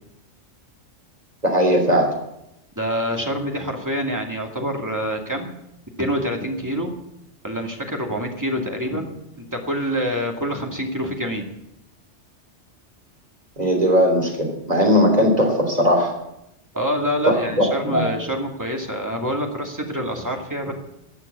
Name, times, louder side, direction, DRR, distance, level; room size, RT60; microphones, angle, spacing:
voice 1, 1.4-2.2 13.6-16.1 17.3-18.0, equal, 35° right, 1 dB, 3.5 m, -18 dB
voice 2, 2.8-5.5 6.0-6.9 7.4-11.5 16.7-20.7, equal, 15° right, 1 dB, 2.3 m, -26 dB
15.0 x 8.2 x 8.3 m, 0.84 s
omnidirectional pair, 1.2 m